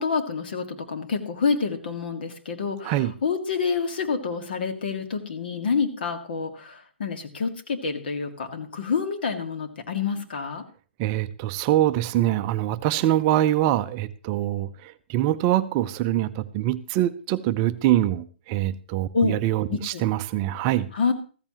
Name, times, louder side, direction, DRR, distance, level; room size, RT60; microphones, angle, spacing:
voice 1, 0.0-10.6 19.1-19.4 19.7-20.0 20.9-21.1, left 5 dB, 55° left, 5 dB, 2.0 m, -27 dB
voice 2, 11.0-20.9, right 13 dB, 30° right, 12 dB, 0.5 m, -24 dB
14.5 x 14.0 x 3.0 m, 0.37 s
figure-of-eight pair, 130°, 6 cm